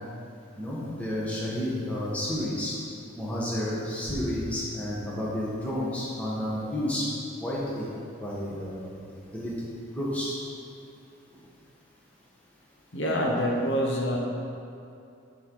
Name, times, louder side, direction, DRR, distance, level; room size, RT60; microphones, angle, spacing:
voice 1, 0.6-2.8 3.2-9.5 9.9-10.4 11.3-11.4, left 1 dB, 5° left, -7 dB, 1.3 m, -31 dB
voice 2, 12.9-14.2, equal, 55° left, -2 dB, 0.9 m, -26 dB
10.5 x 4.0 x 4.7 m, 2.6 s
head